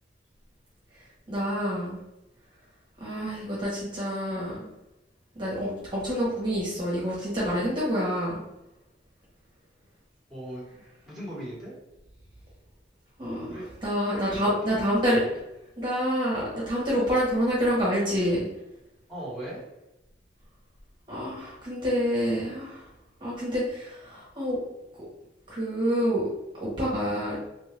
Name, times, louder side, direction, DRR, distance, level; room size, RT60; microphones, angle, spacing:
voice 1, 1.3-2.0 3.0-4.7 5.3-8.4 13.2-15.2 15.8-18.5 21.1-22.8 23.2-24.6 25.5-26.3 26.6-27.4, equal, 25° right, -7 dB, 1.1 m, -27 dB
voice 2, 10.3-11.7 13.5-13.7 14.1-14.8 19.1-19.6, right 1 dB, ahead, -7 dB, 1.4 m, -38 dB
3.3 x 2.6 x 3.3 m, 0.93 s
head